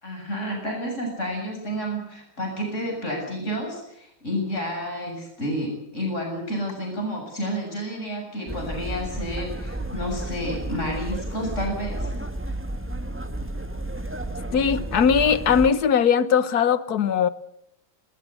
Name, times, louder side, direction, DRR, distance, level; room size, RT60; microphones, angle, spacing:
voice 1, 0.0-12.1, equal, 35° left, 1 dB, 7.5 m, -30 dB
sound 1, 8.5-15.7, right 1 dB, 5° right, 1.3 m, -32 dB
voice 2, 14.5-17.3, left 7 dB, 55° left, 14 dB, 1.5 m, -20 dB
20.5 x 19.5 x 8.4 m, 0.77 s
omnidirectional pair, 2.2 m